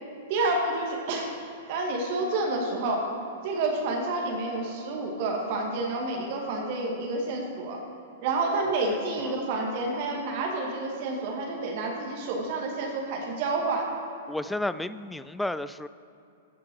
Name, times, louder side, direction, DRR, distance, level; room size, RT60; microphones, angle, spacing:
voice 1, 0.3-1.3 1.7-3.1 3.4-7.8 8.2-13.8, right 2 dB, 50° right, 0 dB, 2.0 m, -29 dB
voice 2, 8.9-9.4 14.3-15.9, left 1 dB, 5° left, 14 dB, 0.3 m, -32 dB
15.5 x 6.0 x 4.7 m, 2.7 s
figure-of-eight pair, 105°, 0 cm